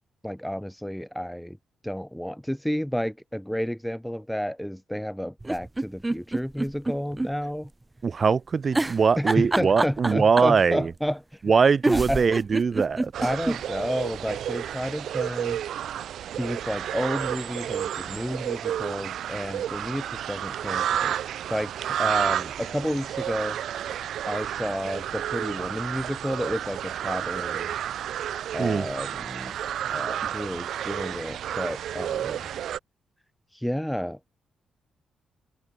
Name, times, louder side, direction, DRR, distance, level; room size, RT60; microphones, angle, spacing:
voice 1, 0.2-1.6 1.8-7.7 9.2-11.2 11.9-12.3 13.2-15.6 16.4-21.2 21.5-21.7 22.0-23.6 24.2-27.7 28.5-29.5 29.9-32.5 33.5-34.3, equal, ahead, 1.1 m, -31 dB
sound 1, 5.4-7.3 7.6-7.7 8.7-10.6 11.5-11.6 11.8-13.6 14.0-14.1 14.3-14.4, right 2 dB, 15° right, 0.5 m, -26 dB
voice 2, 8.0-10.9 11.4-13.1 28.6-28.8, right 5 dB, 40° right, 1.2 m, -22 dB
sound 2, 13.1-32.8, right 10 dB, 75° right, 4.2 m, -31 dB
cardioid pair, 100°, 0 cm